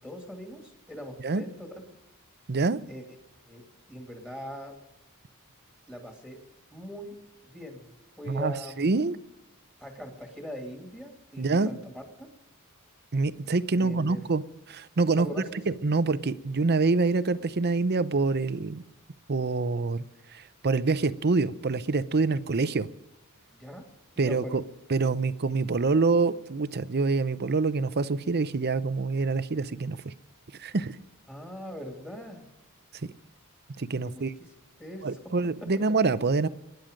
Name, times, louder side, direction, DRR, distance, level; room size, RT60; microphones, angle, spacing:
voice 1, 0.0-1.8 2.9-3.0 3.4-4.8 5.9-6.4 6.7-7.2 7.5-7.9 8.2-8.8 9.8-12.3 13.8-14.2 15.1-15.6 23.5-23.9 24.2-24.6 31.3-32.4 34.0-34.3 34.8-35.1, equal, 10° left, 2 dB, 2.5 m, -41 dB
voice 2, 2.5-2.8 8.3-9.2 11.4-11.7 13.1-14.4 14.7-15.3 15.7-18.8 19.3-20.0 20.3-22.9 24.2-24.6 24.9-30.1 30.6-31.0 33.8-34.3 35.0-36.5, right 3 dB, 45° right, 14 dB, 0.7 m, -26 dB
23.5 x 10.5 x 5.2 m, 1.0 s
head